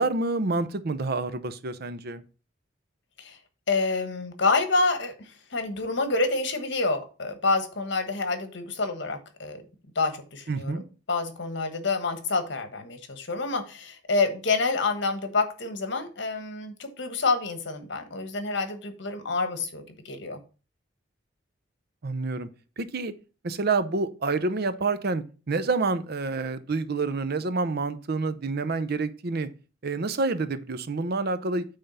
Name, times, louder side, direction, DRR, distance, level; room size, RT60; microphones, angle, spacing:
voice 1, 0.0-2.2 10.5-10.8 22.0-22.5 22.8-23.1 23.4-29.5 29.8-31.7, right 3 dB, 55° right, 12 dB, 0.6 m, -28 dB
voice 2, 3.7-9.6 9.9-20.4, left 3 dB, 65° left, 7 dB, 1.3 m, -28 dB
8.8 x 3.6 x 5.6 m, 0.35 s
head